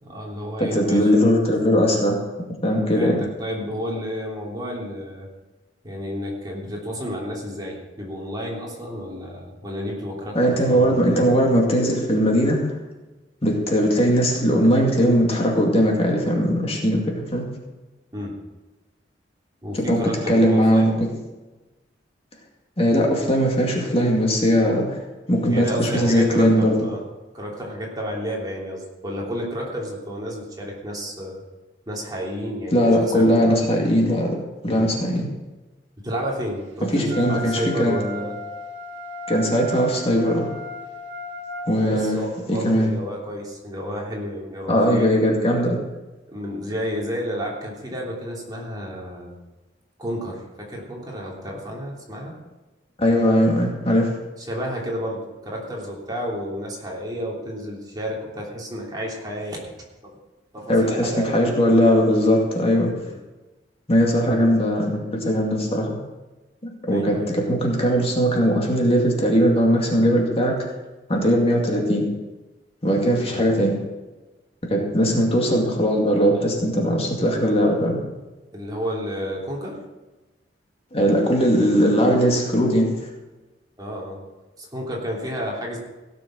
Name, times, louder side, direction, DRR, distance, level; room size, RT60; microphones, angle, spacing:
voice 1, 0.0-1.1 2.9-5.3 5.8-11.2 18.1-18.4 19.6-21.0 25.5-27.0 27.3-31.4 31.9-33.6 34.7-34.9 36.0-38.4 41.8-45.1 46.3-49.3 50.0-52.3 54.4-59.7 60.0-60.2 60.5-61.5 63.0-63.2 66.9-67.3 73.3-73.5 78.5-79.8 83.8-84.2 84.6-85.8, equal, 20° right, -3 dB, 3.1 m, -31 dB
voice 2, 0.6-2.2 2.6-3.2 10.3-12.7 13.4-17.5 19.8-21.1 22.8-25.0 25.3-26.7 32.7-34.4 34.6-35.3 36.9-37.9 39.3-40.5 41.7-42.2 42.5-42.9 44.7-45.8 53.0-54.1 60.7-62.9 63.9-66.0 66.6-70.5 71.1-72.1 72.8-73.7 74.7-78.0 80.9-82.9, equal, 35° left, 0 dB, 2.2 m, -19 dB
Wind instrument woodwind instrument, 37.1-41.7, left 2 dB, 85° right, 1.6 m, -35 dB
16.5 x 6.8 x 6.3 m, 1.1 s
head